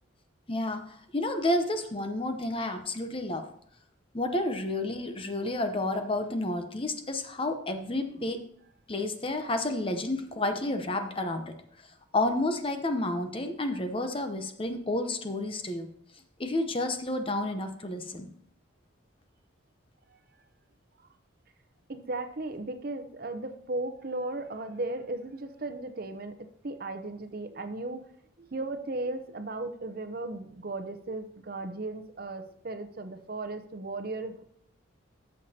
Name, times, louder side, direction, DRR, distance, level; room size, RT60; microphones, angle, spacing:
voice 1, 0.5-3.4 4.1-8.4 8.9-11.5 12.1-15.9 16.4-18.3, left 2 dB, 25° left, 6 dB, 0.8 m, -30 dB
voice 2, 21.9-28.0 28.4-34.4, right 2 dB, 50° right, 8 dB, 0.8 m, -36 dB
13.5 x 6.7 x 2.9 m, 0.68 s
head